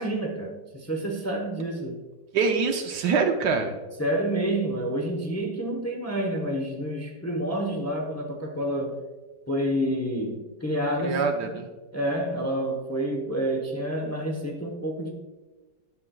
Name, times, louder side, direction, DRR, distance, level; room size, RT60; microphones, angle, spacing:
voice 1, 0.0-2.0 4.0-9.0 9.5-11.5 11.9-15.1, right 1 dB, 25° left, 0 dB, 0.3 m, -28 dB
voice 2, 2.3-3.7 11.0-11.7, right 5 dB, 70° right, 4 dB, 1.2 m, -24 dB
10.5 x 7.4 x 2.3 m, 1.2 s
omnidirectional pair, 2.0 m